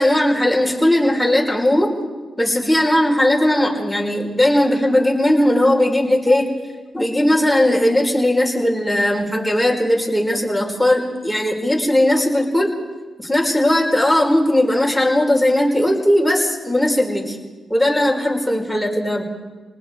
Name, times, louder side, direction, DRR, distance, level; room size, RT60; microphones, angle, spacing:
voice 1, 0.0-1.9 2.4-6.5 6.9-12.7 13.2-17.4 17.7-19.2, left 1 dB, ahead, -1 dB, 5.4 m, -18 dB
29.0 x 19.5 x 4.8 m, 1.3 s
cardioid pair, 60°, 0 cm